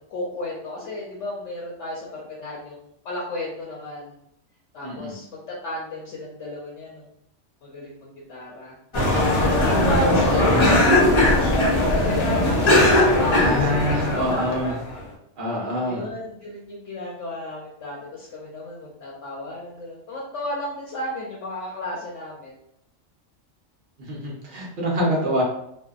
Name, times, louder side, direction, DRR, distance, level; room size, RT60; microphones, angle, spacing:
voice 1, 0.1-2.8 3.0-4.1 4.7-7.1 7.6-8.8 9.1-11.2 11.5-14.8 15.8-22.5, left 1 dB, 75° left, -4 dB, 0.9 m, -33 dB
voice 2, 4.8-5.1 13.3-14.7 15.4-16.1 24.1-25.4, equal, 50° right, -3 dB, 0.8 m, -25 dB
sound 1, 8.9-15.0, left 1 dB, 35° left, 0.5 m, -19 dB
2.6 x 2.1 x 2.3 m, 0.76 s
omnidirectional pair, 1.3 m